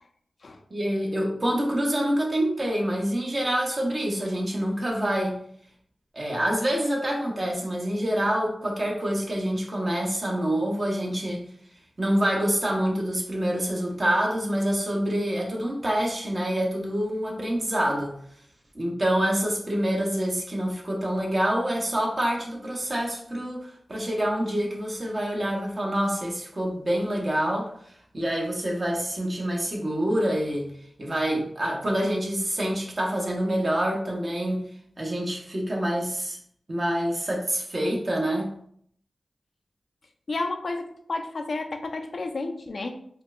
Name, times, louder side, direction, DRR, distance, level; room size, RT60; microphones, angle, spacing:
voice 1, 0.7-5.4 6.1-11.4 12.0-18.2 18.7-27.7 28.1-30.7 31.0-34.7 35.0-36.4 36.7-38.5, right 1 dB, 45° right, -1 dB, 0.9 m, -26 dB
voice 2, 40.3-43.0, left 3 dB, 65° left, 5 dB, 0.4 m, -31 dB
4.3 x 2.1 x 2.5 m, 0.65 s
cardioid pair, 50°, 0 cm